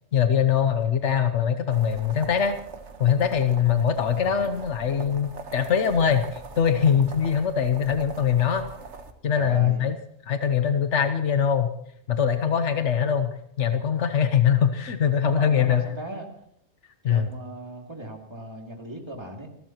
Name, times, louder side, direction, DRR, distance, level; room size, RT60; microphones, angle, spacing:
voice 1, 0.1-2.6 3.0-8.6 9.2-10.0 10.3-11.7 12.1-15.8 17.0-17.3, left 8 dB, 90° left, 8 dB, 1.3 m, -22 dB
sound 1, 1.7-9.1, right 4 dB, 85° right, 1.6 m, -42 dB
voice 2, 4.1-4.4 9.4-9.8 15.2-16.3 17.0-19.5, right 2 dB, 25° right, 1 dB, 2.6 m, -37 dB
27.5 x 13.0 x 3.0 m, 0.73 s
omnidirectional pair, 1.2 m